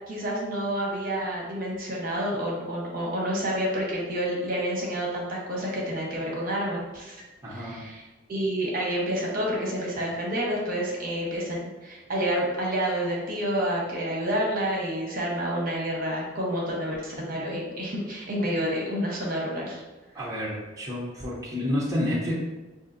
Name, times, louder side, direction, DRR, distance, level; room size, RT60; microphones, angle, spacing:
voice 1, 0.1-7.2 7.5-8.0 8.3-19.8, equal, 45° right, -3 dB, 0.9 m, -29 dB
voice 2, 7.4-7.8 20.1-22.3, left 1 dB, 15° right, -7 dB, 0.7 m, -29 dB
5.3 x 2.6 x 2.6 m, 1.2 s
head